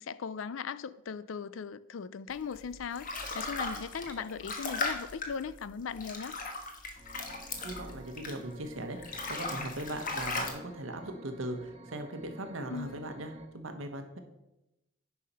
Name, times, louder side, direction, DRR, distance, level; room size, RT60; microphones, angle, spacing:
voice 1, 0.0-3.1 3.3-6.4 12.7-13.1, left 6 dB, 80° left, 0.4 m, -38 dB
sound 1, 2.5-8.6 8.9-10.5, left 3 dB, 45° left, 1.4 m, -37 dB
sound 2, 7.0-13.5, right 1 dB, 30° right, 1.2 m, -51 dB
voice 2, 7.6-14.2, right 1 dB, 90° right, 1.3 m, -39 dB
9.7 x 5.7 x 5.6 m
head